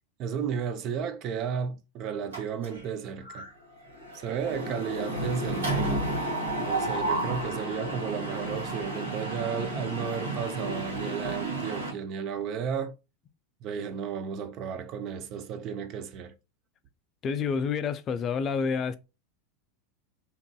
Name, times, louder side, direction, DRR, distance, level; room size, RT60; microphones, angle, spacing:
voice 1, 0.2-3.5 4.1-5.9 6.6-12.9 13.6-16.3, right 7 dB, 45° right, 0.4 m, -33 dB
Mechanisms, 2.3-2.9 3.3-3.5 3.7-11.9, right 1 dB, 80° right, 1.5 m, -32 dB
voice 2, 17.2-19.0, left 5 dB, 35° left, 0.3 m, -28 dB
2.9 x 2.5 x 2.2 m
hypercardioid pair, 90°, 0 cm